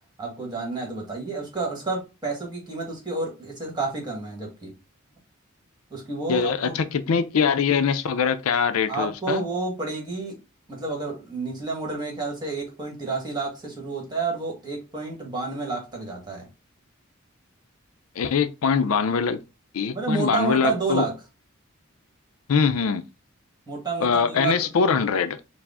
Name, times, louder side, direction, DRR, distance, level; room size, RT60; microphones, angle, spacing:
voice 1, 0.2-4.7 5.9-6.8 8.9-10.4 10.7-16.5 19.9-21.1 23.7-24.7, right 3 dB, 20° right, 1.4 m, -30 dB
voice 2, 6.3-9.5 18.2-19.4 19.7-21.1 22.5-23.0 24.0-25.4, left 6 dB, 85° left, 0.4 m, -23 dB
4.7 x 2.0 x 3.5 m
head